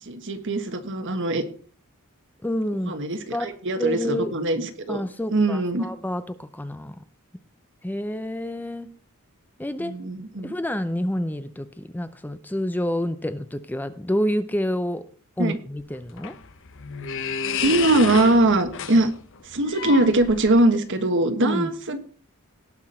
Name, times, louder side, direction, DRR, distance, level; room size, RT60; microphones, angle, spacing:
voice 1, 0.0-1.4 2.8-5.0 5.3-5.9 9.8-10.5 15.4-15.6 17.6-19.1 19.4-22.0, right 2 dB, 55° right, 8 dB, 1.4 m, -22 dB
voice 2, 2.4-2.9 3.3-3.5 3.8-4.3 4.9-7.0 7.8-8.9 9.6-9.9 10.4-15.0 15.4-16.4 21.4-21.7, left 1 dB, 10° left, 11 dB, 0.5 m, -28 dB
sound 1, 15.8-20.8, left 7 dB, 60° left, 1.0 m, -31 dB
18.0 x 6.0 x 4.3 m, 0.44 s
head